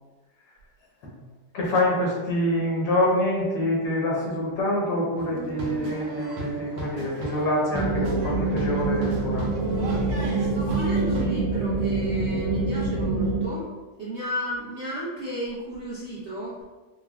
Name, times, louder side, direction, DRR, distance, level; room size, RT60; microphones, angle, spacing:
voice 1, 1.5-9.5, left 1 dB, 85° left, -4 dB, 1.7 m, -26 dB
sound 1, 5.2-11.2, equal, 90° right, 1.4 m, -35 dB
sound 2, 7.7-13.4, right 3 dB, 75° right, 1.1 m, -26 dB
voice 2, 10.2-13.7 14.0-16.6, equal, 55° right, -9 dB, 0.8 m, -34 dB
4.6 x 2.1 x 2.4 m, 1.2 s
omnidirectional pair, 1.9 m